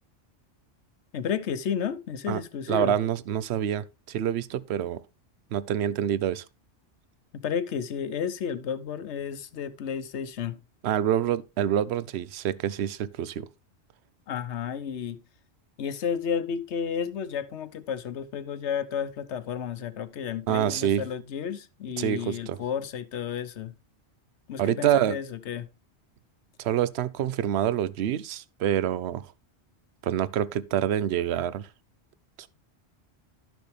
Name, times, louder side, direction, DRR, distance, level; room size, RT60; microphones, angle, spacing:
voice 1, 1.1-2.9 7.3-10.6 14.3-15.2 15.8-23.7 24.5-25.7, left 7 dB, 75° left, 1.1 m, -32 dB
voice 2, 2.7-5.0 5.5-6.4 10.8-13.5 20.5-21.0 22.0-22.6 24.6-25.2 26.6-29.3 30.0-31.7, right 10 dB, 70° right, 0.9 m, -26 dB
12.0 x 6.1 x 3.3 m
omnidirectional pair, 1.2 m